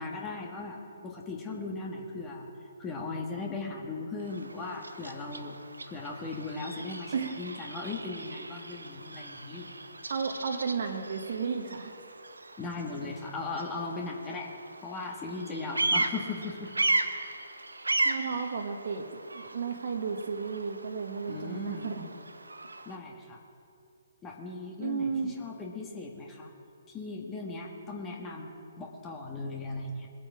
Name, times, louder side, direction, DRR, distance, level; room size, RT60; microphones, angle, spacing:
voice 1, 0.0-2.5 2.8-5.6 5.9-9.7 12.6-14.5 14.8-16.7 18.1-18.2 21.3-21.9 22.9-23.4 24.2-26.5 26.9-30.1, left 3 dB, 15° left, 0 dB, 1.8 m, -38 dB
Bird vocalization bird call bird song, 4.2-23.0, right 2 dB, 80° right, 0.9 m, -36 dB
voice 2, 10.1-11.9 18.0-19.1 19.3-22.1 24.8-25.3, right 5 dB, 55° right, 3 dB, 1.5 m, -33 dB
22.0 x 8.6 x 5.0 m, 2.6 s
figure-of-eight pair, 130°, 0 cm